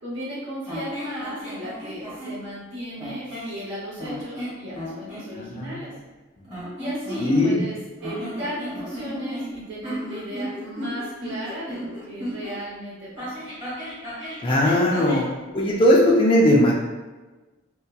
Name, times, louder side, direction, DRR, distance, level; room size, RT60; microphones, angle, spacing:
voice 1, 0.0-5.9 6.8-7.8 8.0-13.5, right 1 dB, 65° right, -7 dB, 0.8 m, -35 dB
sound 1, 0.7-2.4 3.0-3.5 4.0-5.3 6.4-7.7 8.0-12.5 13.2-15.3, equal, 25° right, 1.4 m, -34 dB
voice 2, 5.4-5.8 7.2-7.6 14.4-15.3 15.5-16.7, left 1 dB, 25° left, -3 dB, 0.3 m, -18 dB
2.7 x 2.2 x 2.2 m, 1.2 s
head